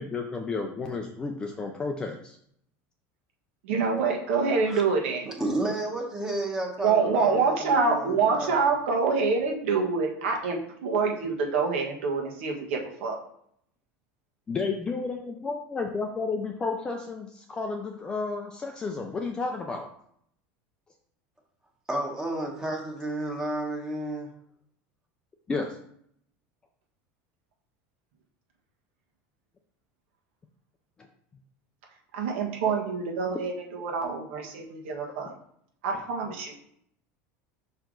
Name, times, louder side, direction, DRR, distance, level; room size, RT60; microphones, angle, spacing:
voice 1, 0.0-2.4 14.5-19.9 25.5-25.8 35.9-36.0, left 4 dB, 15° left, 2 dB, 0.4 m, -32 dB
voice 2, 3.6-5.3 6.8-13.2 32.1-35.3 35.8-36.5, right 4 dB, 90° right, 1 dB, 1.5 m, -26 dB
voice 3, 5.3-8.7 21.9-24.3, right 1 dB, 10° right, 1 dB, 1.0 m, -32 dB
5.7 x 4.5 x 3.8 m, 0.67 s
cardioid pair, 170°, 6 cm